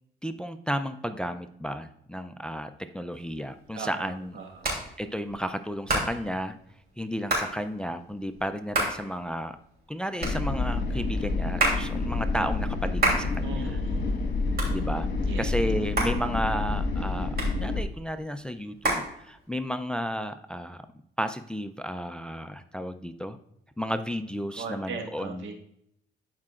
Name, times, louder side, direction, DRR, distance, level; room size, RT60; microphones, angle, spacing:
voice 1, 0.2-4.3 5.0-6.6 7.0-9.6 9.9-13.8 14.7-15.1 15.4-20.9 21.2-23.4 23.8-25.5, equal, 5° left, 9 dB, 0.4 m, -33 dB
Hands, 3.1-19.8, right 2 dB, 50° right, 3.0 m, -32 dB
voice 2, 3.7-4.7 13.4-14.3 15.3-15.6 24.5-25.5, right 5 dB, 75° right, 3 dB, 1.5 m, -39 dB
sound 1, 10.2-17.8, left 3 dB, 55° left, 1.5 m, -28 dB
12.0 x 4.9 x 2.4 m, 0.73 s
cardioid pair, 90°, 20 cm